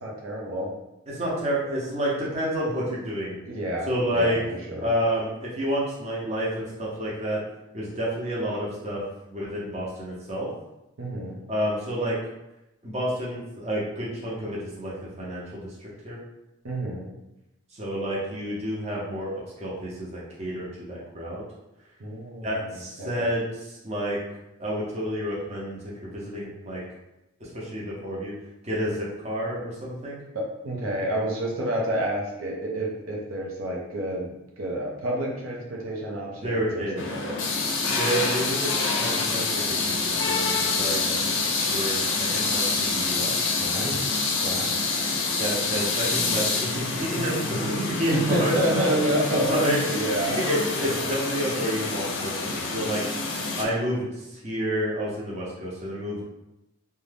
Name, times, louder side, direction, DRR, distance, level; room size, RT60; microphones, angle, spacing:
voice 1, 0.0-0.7 3.5-4.4 4.7-4.9 11.0-11.4 16.6-17.1 22.0-23.3 30.3-37.4 43.6-44.1 44.4-44.8 48.1-50.4 51.0-51.1, right 1 dB, 90° right, -3 dB, 0.7 m, -29 dB
voice 2, 1.1-3.4 3.9-4.4 4.8-7.4 7.7-9.0 9.3-10.5 11.5-12.2 12.8-16.2 17.7-21.4 22.4-24.2 24.6-26.8 27.4-28.3 28.6-30.2 36.4-37.0 37.9-38.7 39.0-41.3 41.7-43.3 45.4-48.5 49.5-49.8 50.2-53.0 53.6-56.2, equal, 30° right, -6 dB, 0.7 m, -29 dB
sound 1, 37.0-53.6, left 3 dB, 65° left, 0.5 m, -27 dB
2.6 x 2.2 x 3.3 m, 0.92 s
head